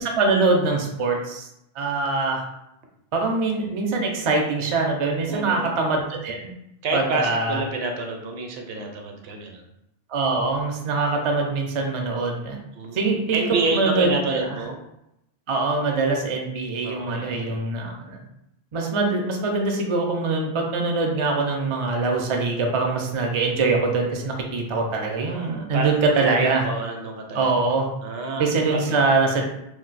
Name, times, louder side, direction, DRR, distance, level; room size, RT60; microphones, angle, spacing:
voice 1, 0.0-1.5 1.8-2.4 3.1-6.5 6.9-7.6 10.1-12.6 12.9-14.6 15.5-18.2 18.7-26.6 27.3-27.9 28.4-29.5, right 3 dB, 45° right, 1 dB, 0.4 m, -23 dB
voice 2, 5.3-5.7 6.8-9.6 12.7-14.8 16.8-17.6 25.3-25.9 26.2-27.5 28.0-29.0, right 3 dB, 75° right, 2 dB, 0.8 m, -28 dB
2.5 x 2.1 x 3.9 m, 0.84 s
omnidirectional pair, 1.1 m